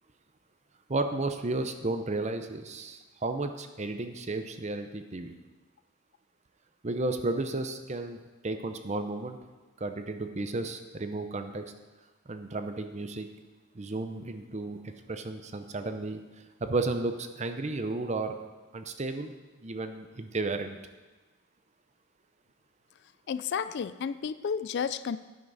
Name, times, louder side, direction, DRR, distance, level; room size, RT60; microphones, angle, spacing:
voice 1, 0.9-5.3 6.8-9.4 9.8-11.6 12.3-13.3 13.7-16.2 16.6-18.4 18.7-19.3 19.6-20.8, right 2 dB, 30° right, 8 dB, 0.6 m, -33 dB
voice 2, 23.3-25.2, left 6 dB, 50° left, 15 dB, 0.3 m, -32 dB
10.5 x 9.5 x 4.0 m, 1.2 s
head